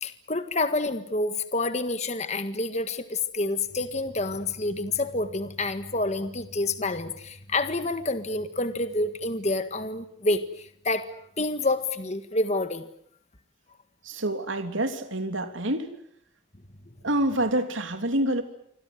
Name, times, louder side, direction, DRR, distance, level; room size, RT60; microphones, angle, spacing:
voice 1, 0.0-11.1 11.4-12.9, left 2 dB, 35° left, 9 dB, 1.7 m, -28 dB
voice 2, 14.0-15.9 17.0-18.4, right 1 dB, 75° right, 7 dB, 3.1 m, -27 dB
27.0 x 25.5 x 8.0 m, 0.68 s
head